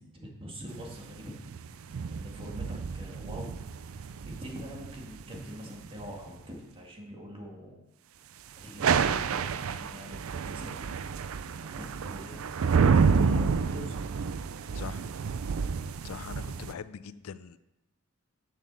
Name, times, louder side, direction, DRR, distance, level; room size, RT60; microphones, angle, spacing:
voice 1, 0.1-1.3 2.1-3.5 4.4-7.8 8.6-10.9 11.6-12.4 12.8-14.0, equal, 25° right, -1 dB, 1.9 m, -43 dB
sound 1, 0.7-6.2 8.6-16.7, right 5 dB, 75° right, 0.4 m, -29 dB
voice 2, 16.0-17.6, left 6 dB, 80° left, 14 dB, 0.4 m, -41 dB
7.3 x 6.8 x 6.8 m, 0.97 s
head